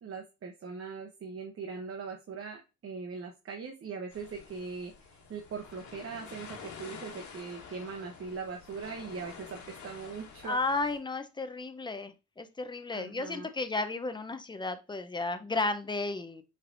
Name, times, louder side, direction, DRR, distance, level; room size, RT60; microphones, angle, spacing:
voice 1, 0.0-10.6 12.9-13.5, right 5 dB, 45° right, 3 dB, 0.9 m, -41 dB
sound 1, 4.1-11.0, left 6 dB, 70° left, 1.4 m, -48 dB
voice 2, 10.4-16.4, left 3 dB, 15° left, 9 dB, 0.7 m, -33 dB
5.7 x 3.3 x 2.6 m, 0.27 s
cardioid pair, 90°, 30 cm